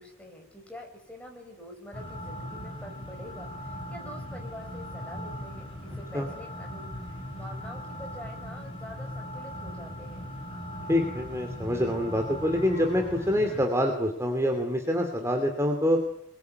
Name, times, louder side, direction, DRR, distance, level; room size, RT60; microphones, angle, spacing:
voice 1, 0.0-10.3, left 1 dB, 5° left, 1 dB, 5.8 m, -46 dB
sound 1, 1.9-13.7, equal, 25° left, 6.7 m, -39 dB
voice 2, 10.9-16.0, equal, 10° right, 3 dB, 2.6 m, -26 dB
24.5 x 22.0 x 9.5 m, 0.71 s
head